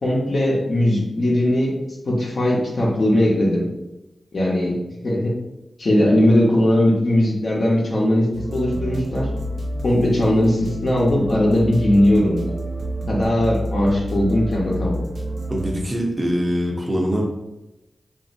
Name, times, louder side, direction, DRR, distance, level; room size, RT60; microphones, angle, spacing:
voice 1, 0.0-1.7 2.1-3.7 4.3-5.3 5.8-9.3 9.8-12.4 13.1-15.0, left 1 dB, 70° left, -3 dB, 0.9 m, -19 dB
sound 1, 8.3-15.7, equal, 75° right, 0.5 m, -29 dB
voice 2, 15.5-17.3, equal, 30° right, -1 dB, 0.7 m, -23 dB
2.9 x 2.6 x 2.5 m, 0.96 s
cardioid pair, 45°, 0 cm